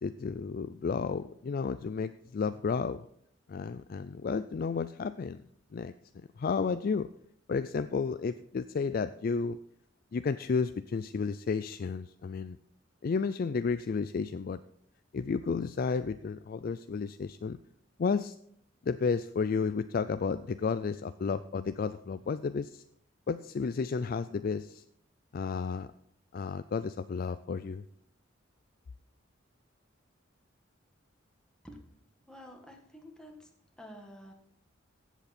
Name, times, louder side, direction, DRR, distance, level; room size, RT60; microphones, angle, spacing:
voice 1, 0.0-3.0 3.5-5.4 5.7-5.9 6.4-7.1 7.5-9.6 10.1-12.6 13.0-14.6 15.1-17.6 18.0-18.4 18.8-22.8 23.3-24.8 25.3-25.9 26.3-27.8, left 5 dB, 45° left, 12 dB, 0.3 m, -32 dB
voice 2, 32.2-33.5 33.8-34.3, equal, 5° left, 1 dB, 1.7 m, -49 dB
15.0 x 8.2 x 4.3 m, 0.69 s
head